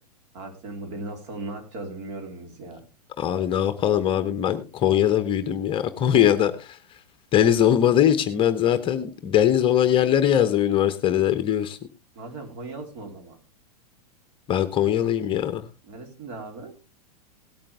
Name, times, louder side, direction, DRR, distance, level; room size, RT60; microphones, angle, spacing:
voice 1, 0.3-2.9 12.1-13.4 15.8-16.9, right 2 dB, 45° right, 3.5 m, -38 dB
voice 2, 3.2-6.8 7.3-11.8 14.5-15.6, left 10 dB, 25° left, 0.9 m, -21 dB
17.5 x 8.8 x 3.5 m
figure-of-eight pair, 95°, 21 cm